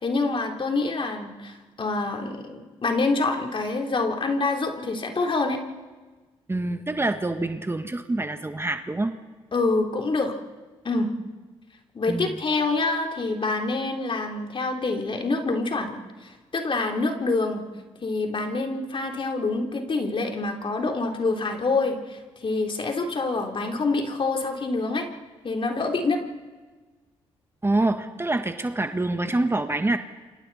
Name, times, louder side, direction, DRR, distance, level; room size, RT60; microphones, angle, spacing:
voice 1, 0.0-5.6 9.5-10.3 10.8-11.1 11.9-17.6 18.0-25.1 25.4-26.2, left 3 dB, 45° left, 2 dB, 3.6 m, -26 dB
voice 2, 6.5-9.1 12.1-12.3 27.6-30.0, right 2 dB, 20° right, 7 dB, 1.5 m, -26 dB
29.0 x 26.0 x 4.2 m, 1.3 s
supercardioid pair, 55°, 12 cm